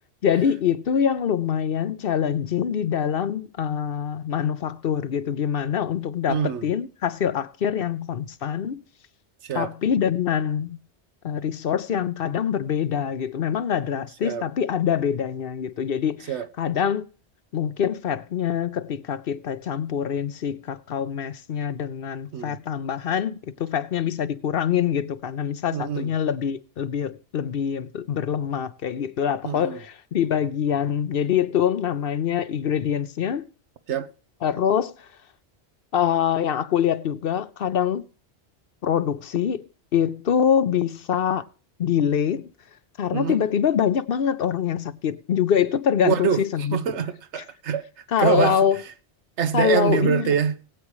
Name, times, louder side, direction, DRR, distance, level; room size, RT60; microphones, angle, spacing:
voice 1, 0.2-8.8 9.5-10.8 11.2-16.3 16.6-17.0 17.5-33.5 34.4-34.9 35.9-38.0 38.8-39.7 39.9-41.5 41.8-42.5 43.0-46.8 48.1-48.8 49.5-50.3, left 8 dB, 60° left, 0.8 m, -24 dB
voice 2, 6.3-6.7 9.4-9.7 14.2-14.4 16.3-16.5 22.3-22.6 25.7-26.1 29.4-29.8 33.9-34.1 43.1-43.4 46.0-46.4 46.7-47.8 48.2-48.6 49.4-50.6, right 8 dB, 90° right, 1.1 m, -24 dB
19.5 x 8.5 x 3.1 m
omnidirectional pair, 1.1 m